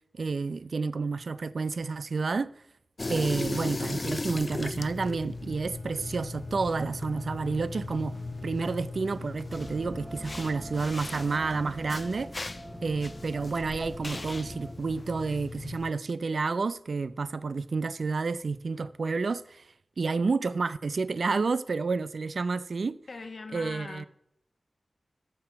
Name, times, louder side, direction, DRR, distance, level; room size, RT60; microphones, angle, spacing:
voice 1, 0.1-2.5 3.1-8.2 8.4-12.3 12.8-19.6 20.0-23.0 23.5-24.0, right 4 dB, 75° right, 0.5 m, -30 dB
sound 1, 3.0-15.9, left 3 dB, 40° left, 0.3 m, -38 dB
Bowed string instrument, 5.3-12.0, equal, 45° right, 4.8 m, -51 dB
sound 2, 9.5-14.7, equal, 15° right, 1.3 m, -43 dB
voice 2, 23.1-24.1, left 3 dB, 70° left, 1.2 m, -40 dB
13.5 x 6.9 x 5.8 m
wide cardioid pair, 75°, 0 cm